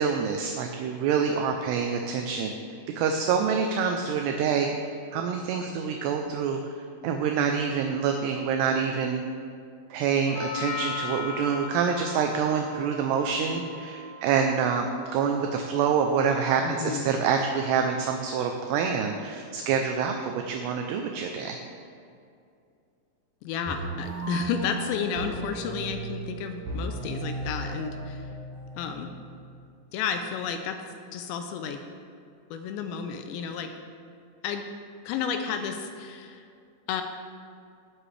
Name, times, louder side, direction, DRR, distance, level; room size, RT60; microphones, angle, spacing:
voice 1, 0.0-2.5 3.0-4.7 5.1-6.6 7.0-9.2 9.9-21.6, right 6 dB, 80° right, 4 dB, 2.5 m, -26 dB
Doorbell, 10.3-18.4, left 4 dB, 20° left, 2.0 m, -40 dB
voice 2, 16.7-17.1 23.4-28.3 28.8-29.1 29.9-30.8 31.1-31.8 32.5-33.7 34.4-34.7 35.1-36.5 36.9-37.0, left 7 dB, 85° left, 6 dB, 2.8 m, -32 dB
sound 1, 23.7-29.7, right 2 dB, 60° right, 3.4 m, -36 dB
19.0 x 7.7 x 3.3 m, 2.4 s
omnidirectional pair, 5.3 m